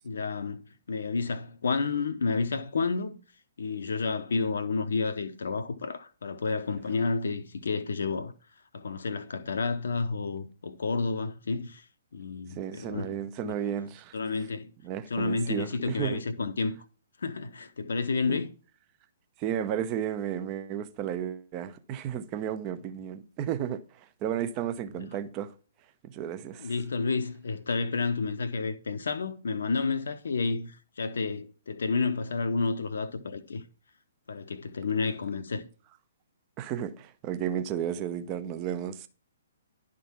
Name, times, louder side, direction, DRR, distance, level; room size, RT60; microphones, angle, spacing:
voice 1, 0.0-0.6 0.9-3.2 3.6-8.3 8.7-11.9 12.1-13.1 13.4-13.6 14.1-14.7 15.1-16.8 17.2-18.5 26.6-33.6 34.3-35.7, left 4 dB, 60° left, 0.7 m, -30 dB
voice 2, 12.6-14.2 14.8-16.2 18.3-18.4 19.4-23.8 24.2-25.5 26.0-26.7 36.6-39.1, right 9 dB, 30° right, 0.7 m, -33 dB
11.0 x 3.7 x 5.8 m
figure-of-eight pair, 125°, 0 cm